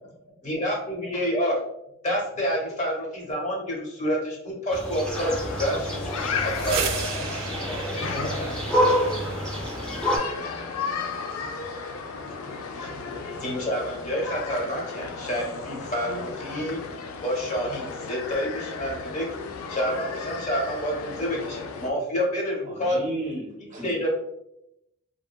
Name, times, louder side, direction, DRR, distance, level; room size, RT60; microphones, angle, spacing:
voice 1, 0.4-1.6 2.0-6.0 6.4-6.9 7.2-7.3 8.0-8.5 12.1-16.8 17.2-19.3 19.7-23.0 23.8-24.1, equal, 35° left, -2 dB, 0.7 m, -28 dB
sound 1, 4.7-10.2, equal, 5° left, 0.4 m, -28 dB
sound 2, 5.1-21.9, left 5 dB, 85° left, 0.3 m, -35 dB
sound 3, 6.3-16.0, right 6 dB, 85° right, 0.3 m, -38 dB
voice 2, 6.6-8.1 8.6-8.8 9.5-11.0 12.3-12.4, left 1 dB, 70° left, -2 dB, 0.8 m, -45 dB
voice 3, 22.6-23.9, right 1 dB, 35° right, -2 dB, 0.6 m, -34 dB
2.7 x 2.2 x 2.2 m, 0.83 s
head